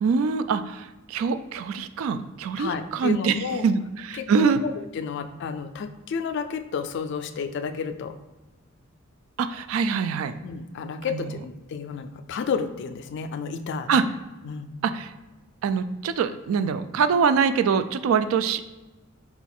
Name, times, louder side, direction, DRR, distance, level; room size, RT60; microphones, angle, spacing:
voice 1, 0.0-3.8 4.1-4.6 9.4-10.3 11.1-11.3 13.9-14.0 14.8-15.1 15.6-18.6, right 6 dB, 75° right, 11 dB, 0.3 m, -24 dB
voice 2, 2.6-3.7 4.1-8.2 10.4-13.9 14.4-14.7, left 6 dB, 55° left, 9 dB, 0.3 m, -31 dB
3.9 x 2.3 x 4.3 m, 1.1 s
head